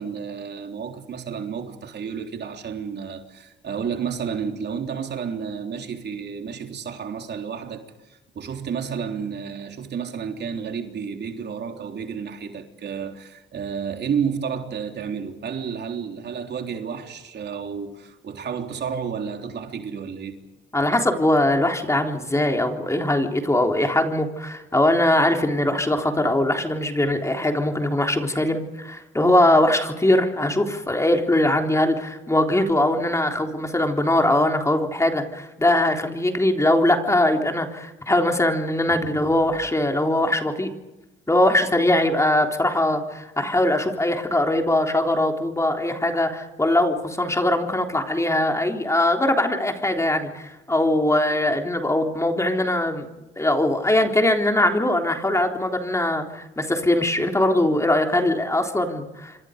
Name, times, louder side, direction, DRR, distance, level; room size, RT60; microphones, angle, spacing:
voice 1, 0.0-20.4 38.9-39.3, right 7 dB, 60° right, 3.5 m, -31 dB
voice 2, 20.7-40.7 41.3-53.1 53.4-59.4, left 1 dB, 15° left, 3.6 m, -21 dB
28.0 x 25.0 x 5.2 m
cardioid pair, 90°, 20 cm